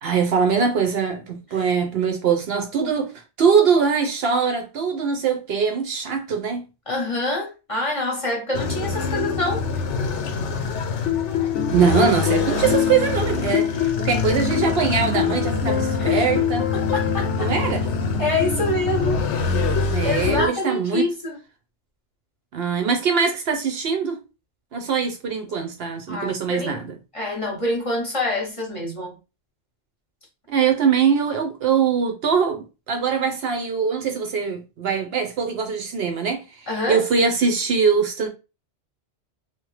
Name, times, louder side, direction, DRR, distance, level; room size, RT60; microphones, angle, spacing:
voice 1, 0.0-3.1 3.4-6.6 11.7-16.7 17.4-17.8 19.9-21.1 22.5-24.2 24.7-26.9 30.5-38.3, right 6 dB, 65° right, 0.8 m, -22 dB
voice 2, 6.9-9.6 16.0-16.2 16.7-17.5 18.2-19.3 20.0-21.4 26.1-26.8 27.1-29.1 36.7-37.0, left 2 dB, 35° left, 0.8 m, -26 dB
sound 1, 8.5-20.5, left 6 dB, 85° left, 0.9 m, -23 dB
2.9 x 2.0 x 3.1 m
omnidirectional pair, 1.2 m